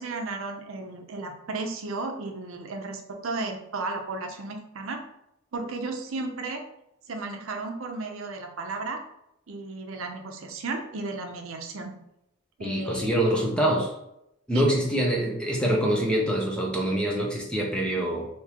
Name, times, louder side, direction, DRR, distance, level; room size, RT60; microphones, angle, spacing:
voice 1, 0.0-5.0 5.5-6.6 7.1-9.0 9.5-12.0 12.6-13.3 14.5-14.7, right 3 dB, 80° right, 4 dB, 0.6 m, -34 dB
voice 2, 12.6-13.9 14.5-18.3, right 1 dB, 5° left, -2 dB, 0.5 m, -25 dB
3.4 x 2.8 x 2.9 m, 0.82 s
head